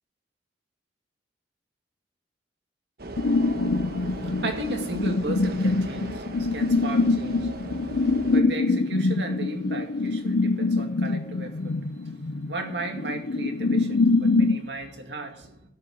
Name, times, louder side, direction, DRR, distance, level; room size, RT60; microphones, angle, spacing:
sound 1, 3.0-8.4, right 2 dB, 60° right, 1.4 m, -38 dB
sound 2, 3.2-14.6, left 3 dB, 75° left, 0.6 m, -24 dB
voice 1, 3.7-15.6, right 2 dB, 75° right, 2.3 m, -36 dB
13.0 x 6.7 x 9.8 m
head